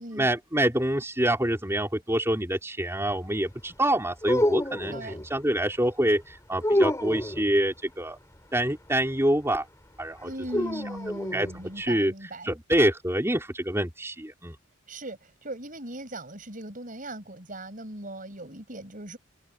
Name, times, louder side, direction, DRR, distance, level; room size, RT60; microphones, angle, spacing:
voice 1, 0.0-8.2 8.5-9.7 10.0-10.7 11.2-12.1 12.4-14.6, right 1 dB, 15° right, 4.3 m, -26 dB
sound 1, 4.2-5.3 6.6-7.5 10.5-11.5, left 1 dB, 15° left, 6.9 m, -27 dB
voice 2, 4.9-5.2 10.2-12.5 14.9-19.2, right 1 dB, 45° right, 7.1 m, -39 dB
head